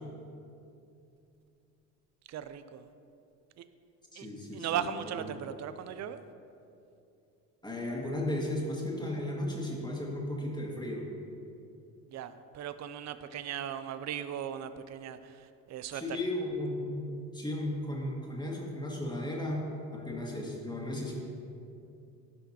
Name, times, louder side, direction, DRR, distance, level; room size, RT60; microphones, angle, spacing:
voice 1, 2.3-2.9 3.6-3.7 4.2-4.3 4.5-6.2 12.1-16.2, right 9 dB, 35° right, 12 dB, 0.5 m, -38 dB
voice 2, 4.1-4.9 7.6-11.1 15.9-21.1, left 1 dB, 10° left, -2 dB, 1.9 m, -35 dB
13.5 x 5.7 x 2.9 m, 2.6 s
hypercardioid pair, 65°, 48 cm